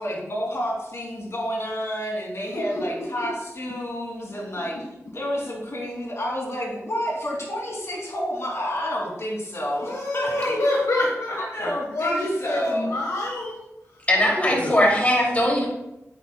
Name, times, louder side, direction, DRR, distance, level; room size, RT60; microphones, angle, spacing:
voice 1, 0.0-4.8 5.1-10.7 11.4-12.9, equal, 55° left, -2 dB, 2.8 m, -29 dB
voice 2, 2.5-3.3 4.7-4.8 9.7-13.5 14.5-14.8 15.3-15.4, left 1 dB, 75° left, -2 dB, 1.4 m, -27 dB
voice 3, 14.1-15.7, left 1 dB, 25° left, -2 dB, 2.7 m, -20 dB
8.8 x 8.2 x 2.3 m, 0.90 s
cardioid pair, 50°, 6 cm